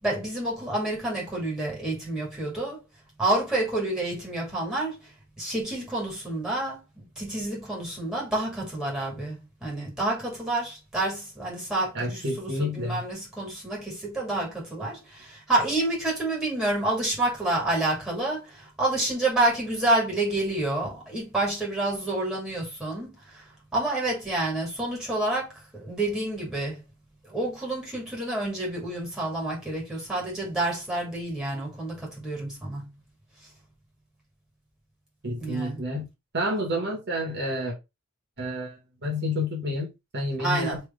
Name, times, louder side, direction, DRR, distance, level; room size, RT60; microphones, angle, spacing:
voice 1, 0.0-2.8 3.2-5.0 5.4-23.4 23.7-26.8 27.3-32.9 35.4-35.8 40.4-40.8, right 2 dB, 5° right, 2.1 m, -28 dB
voice 2, 11.9-13.0 35.2-36.1 36.3-37.8 38.4-40.8, left 1 dB, 55° right, 1.5 m, -29 dB
3.4 x 3.2 x 3.5 m
head